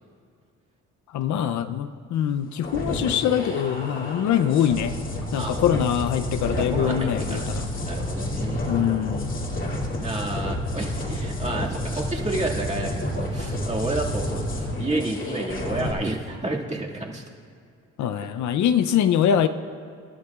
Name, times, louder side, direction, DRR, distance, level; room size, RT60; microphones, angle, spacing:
voice 1, 1.1-5.0 5.3-7.7 8.7-9.4 18.0-19.5, left 9 dB, 70° left, 10 dB, 0.6 m, -23 dB
sound 1, 2.6-15.9, left 1 dB, 40° left, 2.4 m, -30 dB
voice 2, 6.6-7.5 7.8-8.7 10.0-17.2, right 2 dB, 25° right, -2 dB, 2.0 m, -30 dB
27.0 x 11.5 x 2.4 m, 2.3 s
cardioid pair, 90°, 30 cm